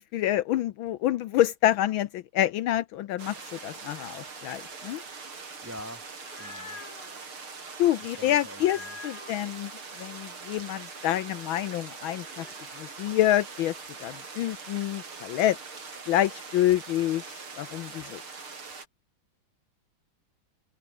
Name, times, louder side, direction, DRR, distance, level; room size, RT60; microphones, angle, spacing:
voice 1, 0.0-5.0 7.8-9.7 10.0-12.5 12.8-13.7 14.0-15.6 16.0-18.2, left 13 dB, 75° left, 1.5 m, -27 dB
sound 1, 3.2-18.9, right 4 dB, 80° right, 4.7 m, -42 dB
voice 2, 5.2-6.0 6.4-6.8 8.2-9.0, equal, 5° right, 2.6 m, -45 dB
sound 2, 6.0-7.1 8.5-9.5 12.3-13.0, left 4 dB, 55° left, 4.0 m, -46 dB
open air
omnidirectional pair, 2.3 m